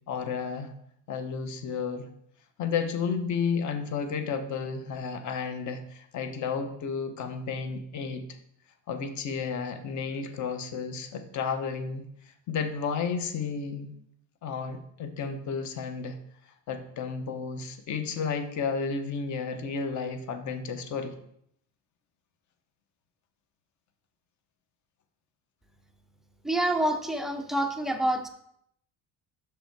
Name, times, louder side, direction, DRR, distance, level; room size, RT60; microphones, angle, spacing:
voice 1, 0.1-0.7 1.1-2.1 2.6-8.2 8.9-12.0 12.5-13.9 14.4-16.2 16.7-21.1, left 5 dB, 45° left, 7 dB, 0.9 m, -32 dB
voice 2, 26.4-28.3, right 1 dB, ahead, 5 dB, 0.3 m, -27 dB
7.0 x 5.0 x 4.6 m, 0.71 s
cardioid pair, 170°, 40 cm